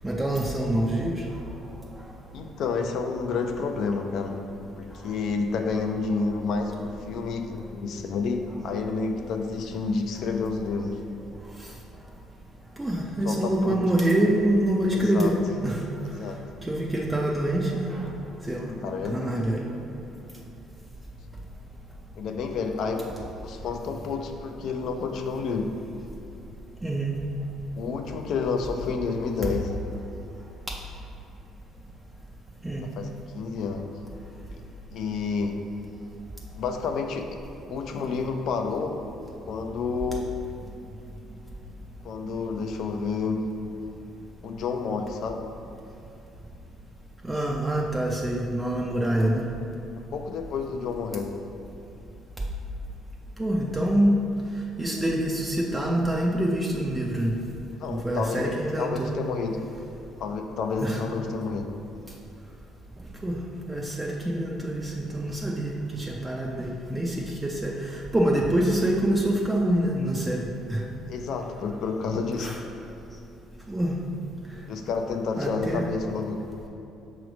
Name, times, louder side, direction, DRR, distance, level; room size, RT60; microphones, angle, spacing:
voice 1, 0.0-1.2 12.8-15.8 16.6-18.1 18.4-18.7 19.0-19.7 26.8-27.1 30.7-30.8 32.6-32.8 47.2-49.4 53.4-54.3 54.8-57.4 57.9-59.1 60.8-61.0 63.2-63.4 63.7-70.8 72.4-72.6 73.7-74.0 75.4-75.9, right 1 dB, 10° right, -2 dB, 0.5 m, -26 dB
voice 2, 2.3-4.4 4.8-11.0 13.2-13.8 15.0-15.3 16.0-16.4 18.6-19.4 22.2-23.1 23.4-25.7 27.8-29.7 33.0-33.1 33.3-33.9 34.9-35.6 36.6-37.4 37.7-39.0 39.5-40.3 42.0-43.4 44.4-45.4 50.0-51.3 57.8-59.6 60.2-61.7 71.1-72.5 74.7-76.4, left 4 dB, 60° left, 5 dB, 0.5 m, -29 dB
5.8 x 3.2 x 5.1 m, 2.8 s
cardioid pair, 125°, 0 cm